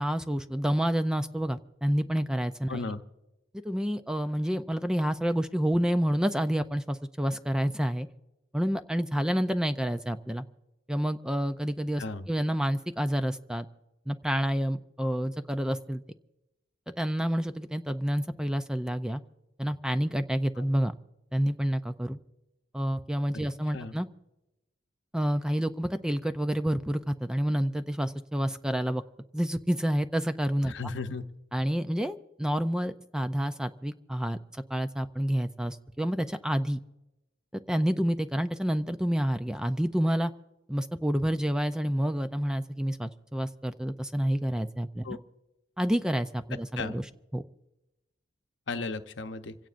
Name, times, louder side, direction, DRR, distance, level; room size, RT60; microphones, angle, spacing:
voice 1, 0.0-2.8 3.5-8.1 8.5-10.4 10.9-13.7 14.1-16.0 16.9-19.2 19.6-20.9 21.3-22.2 22.7-24.1 25.1-29.0 29.3-30.7 31.5-36.8 37.5-40.3 40.7-45.0 45.8-47.0 47.3-47.4, equal, 5° right, 9 dB, 0.4 m, -29 dB
voice 2, 2.7-3.0 12.0-12.3 20.6-20.7 23.7-23.9 30.7-31.2 45.0-45.2 46.8-47.0 48.7-49.6, left 3 dB, 65° left, 8 dB, 0.8 m, -35 dB
27.0 x 16.5 x 2.5 m, 0.97 s
head